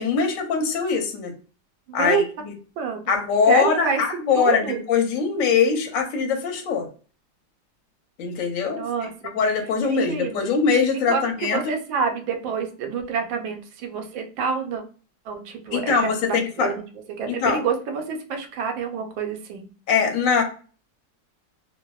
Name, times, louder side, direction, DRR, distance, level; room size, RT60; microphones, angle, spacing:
voice 1, 0.0-1.3 1.9-2.5 3.1-6.9 8.2-8.8 9.3-11.6 15.7-16.7 17.3-17.6 19.9-20.4, left 5 dB, 65° left, 3 dB, 0.8 m, -22 dB
voice 2, 1.9-2.2 2.8-3.1 3.5-4.0 4.3-4.8 8.7-9.1 9.8-10.5 11.1-14.8 15.3-16.8 17.2-19.7, right 6 dB, 90° right, 4 dB, 1.3 m, -27 dB
3.3 x 2.0 x 2.2 m, 0.38 s
omnidirectional pair, 2.0 m